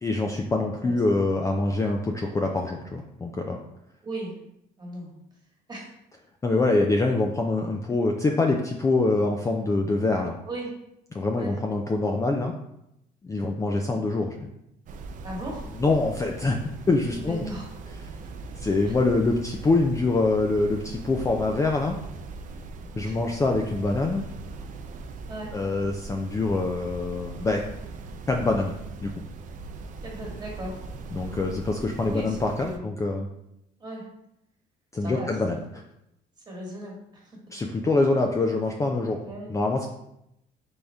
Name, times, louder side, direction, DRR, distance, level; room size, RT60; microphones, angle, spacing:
voice 1, 0.0-3.6 6.4-10.3 11.1-12.5 13.2-14.5 15.8-16.6 16.9-17.4 18.6-22.0 23.0-24.2 25.5-27.6 28.3-28.7 29.0-29.1 31.1-33.3 34.9-35.6 37.5-39.2 39.5-39.9, left 3 dB, 20° left, 1 dB, 0.4 m, -25 dB
voice 2, 4.0-4.3 4.8-5.1 5.7-5.9 10.5-10.7 11.4-11.6 15.2-15.7 17.2-17.7 18.8-18.9 23.0-23.2 25.3-25.5 30.0-30.8 32.1-33.0 33.8-34.0 35.0-35.3 36.5-37.3 39.2-39.5, right 1 dB, 25° right, -2 dB, 1.4 m, -36 dB
sound 1, 14.9-32.8, right 3 dB, 50° right, 0.4 m, -40 dB
3.9 x 3.5 x 3.4 m, 0.81 s
cardioid pair, 110°, 17 cm